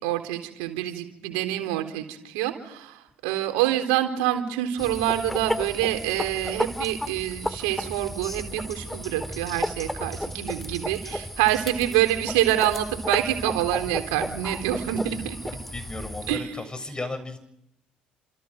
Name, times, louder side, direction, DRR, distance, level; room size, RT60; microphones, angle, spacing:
voice 1, 0.0-15.4 16.3-16.5, right 13 dB, 75° right, 6 dB, 3.8 m, -26 dB
sound 1, 4.8-16.4, equal, 5° left, 2.1 m, -33 dB
voice 2, 15.1-17.4, left 2 dB, 20° left, 9 dB, 7.4 m, -36 dB
29.0 x 28.0 x 5.3 m, 0.80 s
hypercardioid pair, 55°, 4 cm